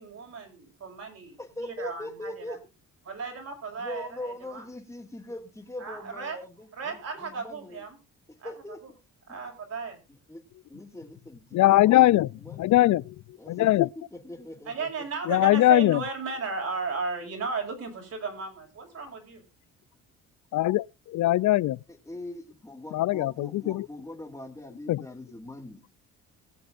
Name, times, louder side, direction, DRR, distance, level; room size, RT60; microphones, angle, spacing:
voice 1, 0.0-2.6 3.1-4.7 5.8-6.4 6.8-8.0 8.4-8.5 8.8-8.9 9.3-10.0 14.7-19.4, right 4 dB, 55° right, 6.1 m, -35 dB
voice 2, 1.4-2.6 3.8-7.8 8.4-8.8 9.3-9.4 10.3-10.4 10.7-12.7 13.4-15.1 21.9-25.9, left 1 dB, 10° left, 3.0 m, -41 dB
voice 3, 11.5-12.3 12.6-13.1 13.5-13.9 15.3-16.0 20.5-21.8 22.9-23.9 24.9-25.0, left 15 dB, 70° left, 0.5 m, -21 dB
22.0 x 7.8 x 2.6 m
cardioid pair, 90°, 30 cm